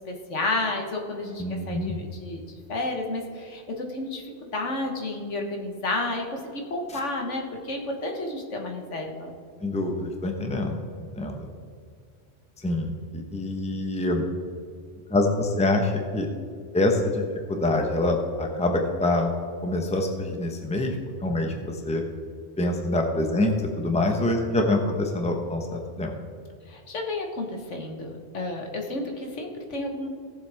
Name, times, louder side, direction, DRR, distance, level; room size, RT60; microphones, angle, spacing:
voice 1, 0.1-9.3 26.7-30.1, left 2 dB, 70° left, 2 dB, 1.7 m, -31 dB
voice 2, 1.4-2.0 9.6-10.8 11.1-11.5 12.6-14.2 15.1-16.3 16.7-17.2 17.5-19.3 19.6-22.0 22.6-26.1, left 2 dB, 5° left, 2 dB, 0.9 m, -25 dB
17.5 x 7.4 x 3.5 m, 2.2 s
omnidirectional pair, 1.3 m